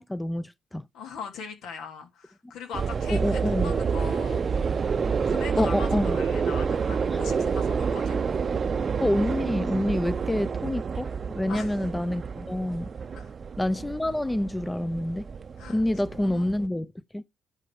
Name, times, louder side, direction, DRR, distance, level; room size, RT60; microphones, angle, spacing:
voice 1, 0.0-0.9 3.1-3.7 5.6-6.1 7.1-7.2 9.0-11.1 11.3-12.9 13.6-15.3 15.7-16.9 17.1-17.2, left 1 dB, 10° left, 0.5 m, -27 dB
voice 2, 0.9-4.4 5.3-8.2 11.5-11.8 13.1-13.3 15.6-15.8 16.2-16.5, left 6 dB, 90° left, 2.8 m, -40 dB
sound 1, 2.7-16.7, right 5 dB, 45° right, 0.6 m, -28 dB
11.0 x 4.1 x 4.8 m
cardioid pair, 100°, 0 cm